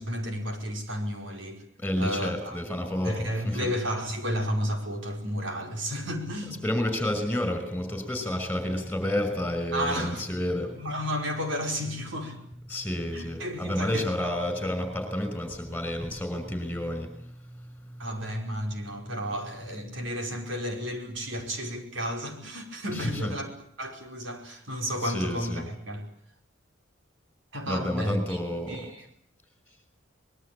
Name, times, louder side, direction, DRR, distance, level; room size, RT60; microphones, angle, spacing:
voice 1, 0.0-1.6 2.0-2.6 3.0-6.6 9.7-10.3 10.6-12.4 13.1-14.3 18.0-23.5 23.8-26.0 27.5-28.4 28.7-29.0, equal, 75° right, 3 dB, 5.2 m, -32 dB
voice 2, 1.8-3.7 6.6-10.8 12.7-18.1 22.9-23.3 25.0-25.7 27.7-28.9, left 1 dB, 10° left, 8 dB, 5.9 m, -30 dB
24.5 x 21.5 x 8.7 m, 0.68 s
head